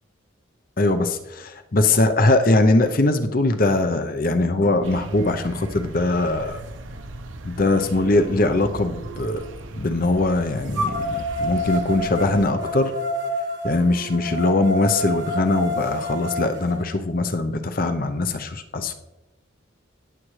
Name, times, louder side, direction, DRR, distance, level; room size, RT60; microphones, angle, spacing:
voice 1, 0.8-6.6 7.4-9.4 9.7-12.9 13.6-18.9, left 2 dB, 45° left, 8 dB, 0.7 m, -21 dB
sound 1, 4.8-12.5, right 1 dB, 75° right, 0.9 m, -38 dB
sound 2, 6.9-7.0 7.6-9.5 10.7-16.8, equal, 60° right, 1.2 m, -29 dB
17.0 x 7.4 x 3.2 m, 1.0 s
head